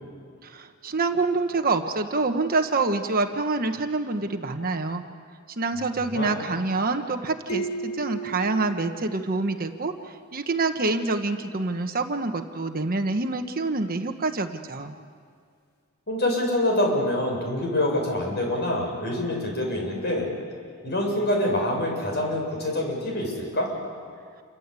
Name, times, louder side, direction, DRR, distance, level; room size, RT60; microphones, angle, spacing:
voice 1, 0.4-5.0 5.6-14.9, right 3 dB, 45° right, 6 dB, 1.2 m, -26 dB
sound 1, 7.5-10.1, right 3 dB, 80° left, 3.1 m, -35 dB
voice 2, 16.1-20.3 20.8-23.7, left 1 dB, 50° left, 0 dB, 7.4 m, -26 dB
28.5 x 24.5 x 8.4 m, 2.1 s
head